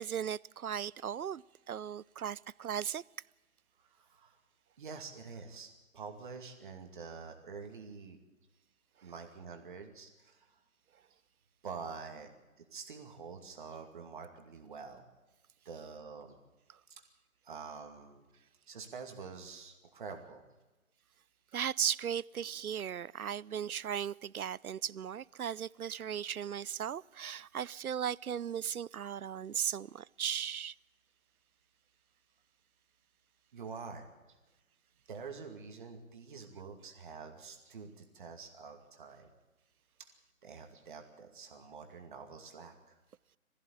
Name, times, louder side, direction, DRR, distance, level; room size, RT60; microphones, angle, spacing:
voice 1, 0.0-3.0 21.5-30.7, right 8 dB, 80° right, 0.6 m, -37 dB
voice 2, 3.9-4.4 4.8-8.2 9.0-10.6 11.6-12.3 12.7-15.0 15.6-16.4 17.4-18.2 18.7-20.4 33.5-34.1 35.1-39.3 40.0-40.1 40.4-43.0, right 5 dB, 35° right, 2.4 m, -47 dB
21.0 x 15.0 x 8.6 m
figure-of-eight pair, 155°, 43 cm